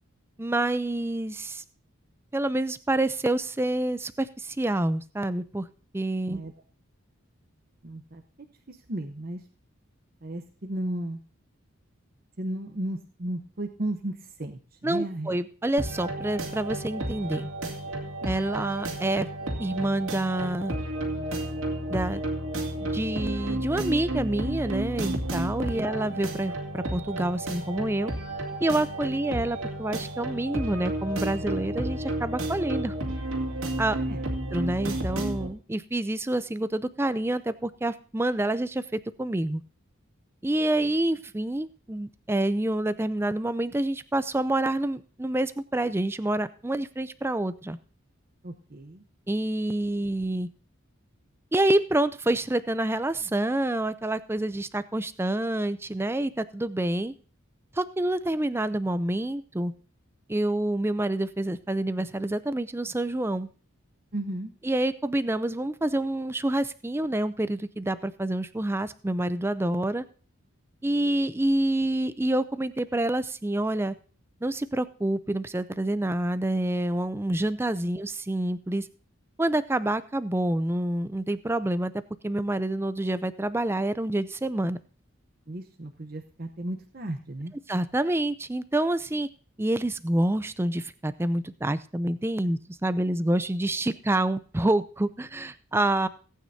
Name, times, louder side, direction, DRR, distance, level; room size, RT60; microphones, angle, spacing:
voice 1, 0.4-1.6 2.3-5.7 5.9-6.4 14.8-17.5 18.2-19.3 19.6-20.7 21.9-22.2 22.8-28.1 28.6-32.9 33.8-34.0 34.5-39.6 40.4-47.8 49.3-50.5 51.5-57.1 57.7-59.7 60.3-63.5 64.6-70.0 70.8-73.9 74.4-78.9 79.4-84.8 87.7-89.3 89.6-96.1, right 1 dB, 10° right, 14 dB, 0.4 m, -27 dB
voice 2, 7.8-8.2 8.7-9.4 10.2-11.2 12.4-15.3 25.8-25.9 34.0-34.2 48.4-49.0 64.1-64.5 85.5-87.5, right 1 dB, 45° right, 4 dB, 0.9 m, -34 dB
sound 1, 15.8-35.5, right 1 dB, 75° right, 2.5 m, -32 dB
18.0 x 9.2 x 2.7 m, 0.40 s
head